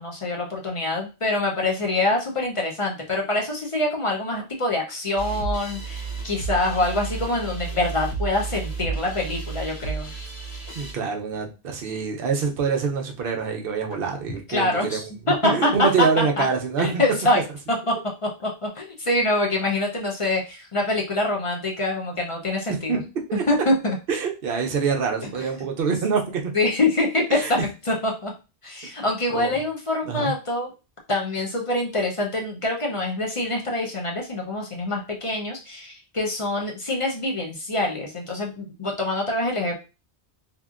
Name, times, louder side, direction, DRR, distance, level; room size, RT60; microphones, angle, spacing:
voice 1, 0.0-10.1 14.5-15.9 16.4-16.5 16.8-17.4 17.9-18.0 18.2-23.0 23.5-24.0 26.5-27.6 27.9-28.3 28.6-30.7 31.1-39.8, left 2 dB, 40° left, 0.5 m, -25 dB
sound 1, 5.2-10.9, right 5 dB, 70° left, 1.7 m, -32 dB
voice 2, 10.8-15.0 15.2-17.0 22.9-23.4 24.1-26.5 27.3-27.5 29.3-29.5 30.1-30.3, right 5 dB, 60° right, 0.8 m, -25 dB
2.9 x 2.6 x 2.4 m
omnidirectional pair, 1.1 m